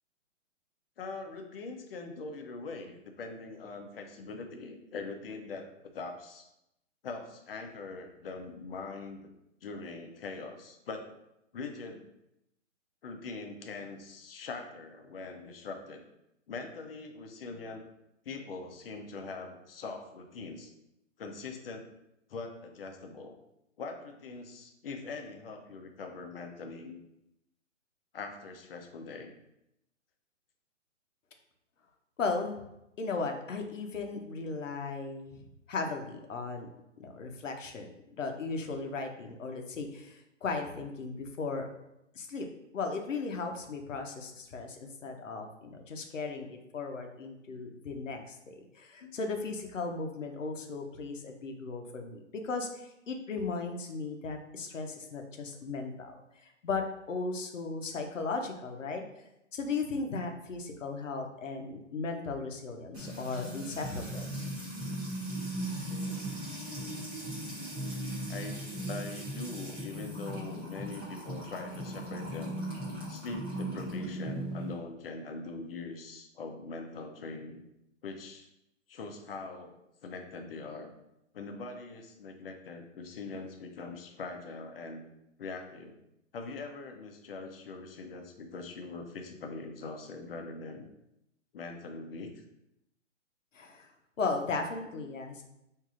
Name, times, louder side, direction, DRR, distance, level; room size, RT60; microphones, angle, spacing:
voice 1, 1.0-5.7 5.9-6.5 7.0-9.2 9.6-11.1 11.5-12.1 13.0-16.0 16.5-17.9 18.2-20.7 21.2-21.9 22.3-23.3 23.8-27.0 28.1-29.3 49.0-49.1 68.3-72.6 73.1-77.7 78.0-78.5 78.9-79.8 80.0-80.9 81.3-85.0 85.4-86.0 86.3-90.9 91.5-92.3, left 3 dB, 50° left, 4 dB, 0.6 m, -42 dB
voice 2, 32.2-32.6 33.0-36.7 37.0-41.7 42.2-42.5 42.7-56.8 57.1-59.0 59.5-64.3 93.5-93.9 94.2-95.4, left 4 dB, 85° left, 4 dB, 0.8 m, -36 dB
Music / Water tap faucet / Trickle dribble, 62.9-74.7, right 1 dB, 15° right, 0.7 m, -38 dB
4.7 x 2.7 x 2.4 m, 0.86 s
hypercardioid pair, 145°, 37 cm